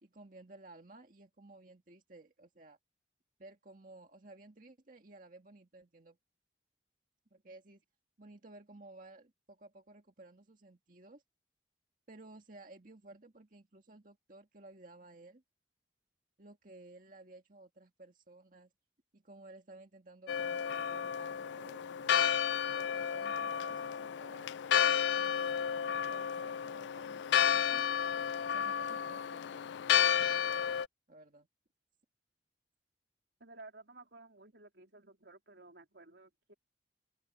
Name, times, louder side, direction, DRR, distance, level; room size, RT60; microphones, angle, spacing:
voice 1, 0.0-2.8 3.4-6.2 7.3-7.8 8.2-11.2 12.1-15.4 16.4-18.7 19.1-22.3 22.7-24.5 25.1-27.9 28.4-29.7 30.2-30.7 31.1-31.5, right 2 dB, 50° right, 1.9 m, -56 dB
Church bell, 20.3-30.9, left 8 dB, 85° left, 0.3 m, -32 dB
voice 2, 33.4-36.5, right 2 dB, 80° right, 3.7 m, -55 dB
open air
head